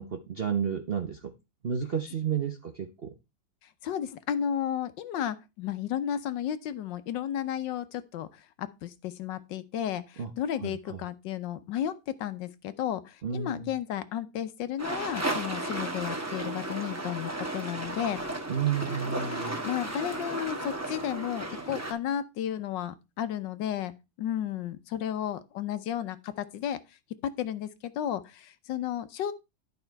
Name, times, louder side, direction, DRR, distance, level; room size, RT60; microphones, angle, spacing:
voice 1, 0.0-1.3 1.6-3.1 10.2-10.3 10.6-11.0 13.2-13.7 18.5-19.6, right 7 dB, 50° right, 0.7 m, -31 dB
voice 2, 3.8-18.2 19.3-23.9 24.2-26.8 27.2-29.3, left 10 dB, 75° left, 1.4 m, -33 dB
sound 1, 14.8-21.9, right 1 dB, 10° right, 1.2 m, -34 dB
11.0 x 5.4 x 4.5 m
omnidirectional pair, 2.1 m